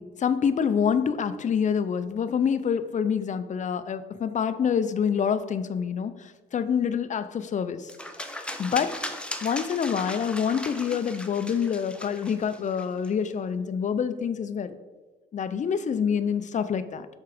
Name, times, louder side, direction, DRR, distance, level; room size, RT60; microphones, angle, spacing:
voice 1, 0.0-7.9 8.6-9.0 9.4-14.8 15.3-17.1, left 7 dB, 40° left, 11 dB, 0.5 m, -26 dB
sound 1, 7.9-13.1, left 1 dB, 5° left, 0.7 m, -38 dB
6.9 x 4.6 x 5.0 m, 1.3 s
cardioid pair, 90°, 20 cm